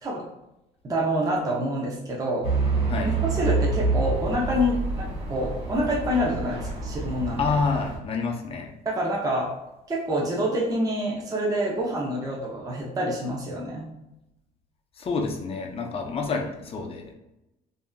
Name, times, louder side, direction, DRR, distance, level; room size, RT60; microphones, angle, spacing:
voice 1, 0.8-2.5 3.0-7.5 8.8-9.5 9.9-13.9, equal, 20° right, -4 dB, 0.6 m, -27 dB
Truck / Idling, 2.4-8.0, right 3 dB, 35° right, 1.1 m, -27 dB
voice 2, 7.4-8.7 15.0-17.1, left 4 dB, 35° left, 2 dB, 0.6 m, -28 dB
3.4 x 2.6 x 2.2 m, 0.91 s
cardioid pair, 110°, 17 cm